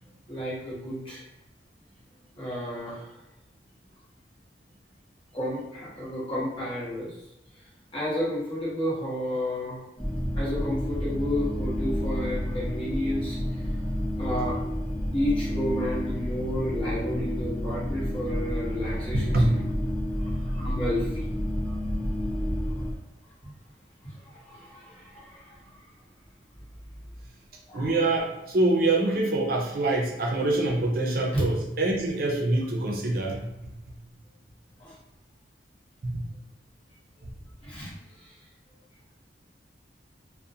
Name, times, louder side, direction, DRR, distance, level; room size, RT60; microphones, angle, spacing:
voice 1, 0.3-1.2 2.4-3.1 5.3-7.1 7.9-9.8 10.3-13.4 14.2-14.6 15.1-19.6 20.2-21.3 21.6-21.8 23.4-23.5 24.0-25.8 27.7-27.9 31.3-31.4 34.8-34.9 37.6-38.3, equal, 30° left, -8 dB, 0.9 m, -32 dB
sound 1, 10.0-22.9, equal, 5° left, 0.4 m, -30 dB
voice 2, 27.7-33.4 36.0-36.2, right 2 dB, 50° right, 0 dB, 0.5 m, -25 dB
2.4 x 2.1 x 2.7 m, 0.89 s
head